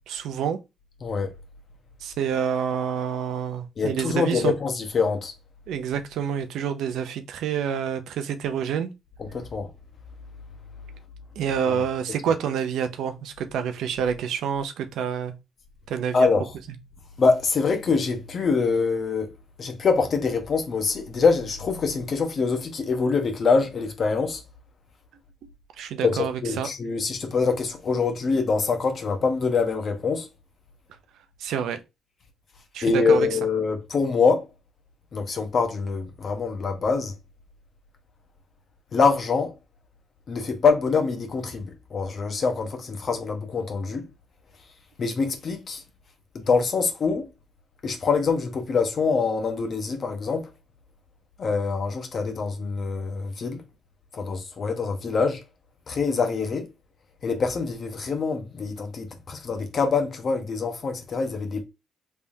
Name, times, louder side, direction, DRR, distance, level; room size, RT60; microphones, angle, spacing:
voice 1, 0.1-0.6 2.0-4.5 5.7-8.9 11.4-15.4 15.9-16.3 25.8-26.7 31.4-31.8 32.7-33.3, right 7 dB, 75° right, 0.5 m, -27 dB
voice 2, 3.8-5.3 9.3-9.7 16.1-16.5 17.2-19.3 19.6-24.4 26.0-30.3 32.8-34.5 35.1-37.1 38.9-39.5 40.3-44.1 45.0-45.8 46.3-47.3 47.8-50.5 51.4-53.6 54.1-55.4 55.9-56.7 57.2-61.6, left 4 dB, 55° left, 1.0 m, -24 dB
3.4 x 3.3 x 2.7 m
supercardioid pair, 55°, 0 cm